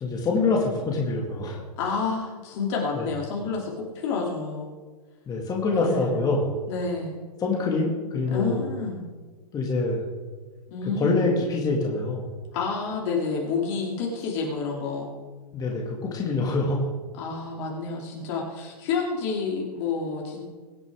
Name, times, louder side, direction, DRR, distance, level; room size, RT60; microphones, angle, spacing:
voice 1, 0.0-1.6 2.9-3.1 5.3-6.6 7.4-8.7 9.5-10.1 10.9-12.2 15.5-16.8, left 3 dB, 20° left, -1 dB, 2.2 m, -25 dB
voice 2, 1.8-4.7 5.7-6.2 6.7-7.2 8.3-9.0 10.7-11.2 12.5-15.1 17.1-20.4, left 4 dB, 45° left, -2 dB, 3.0 m, -29 dB
22.5 x 8.1 x 3.7 m, 1.4 s
hypercardioid pair, 125°, 21 cm